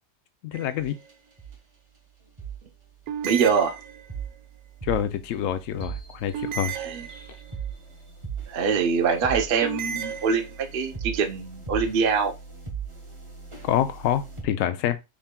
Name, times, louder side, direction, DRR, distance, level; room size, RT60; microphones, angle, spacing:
voice 1, 0.4-1.0 4.8-6.8 13.6-15.0, left 10 dB, 65° left, 0.9 m, -26 dB
sound 1, 0.5-1.1 3.1-4.4 6.3-7.7 9.6-10.9, right 8 dB, 75° right, 1.1 m, -35 dB
sound 2, 0.8-1.1 1.4-1.6 2.4-2.6 3.2-14.4, right 6 dB, 20° right, 1.1 m, -39 dB
voice 2, 3.2-3.8 6.8-7.0 8.5-12.3, right 6 dB, 50° right, 0.7 m, -24 dB
5.5 x 3.6 x 2.2 m
omnidirectional pair, 1.6 m